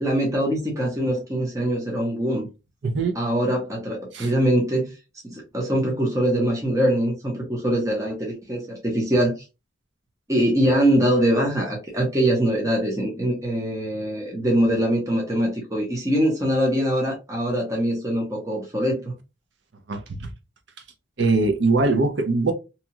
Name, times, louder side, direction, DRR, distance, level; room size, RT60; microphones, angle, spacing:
voice 1, 0.0-2.5 3.1-4.9 5.2-9.4 10.3-19.1, right 1 dB, 15° right, 0.7 m, -23 dB
voice 2, 2.8-3.1 4.1-4.3 19.9-20.3 21.2-22.5, right 3 dB, 65° right, 0.6 m, -21 dB
2.8 x 2.3 x 2.8 m
head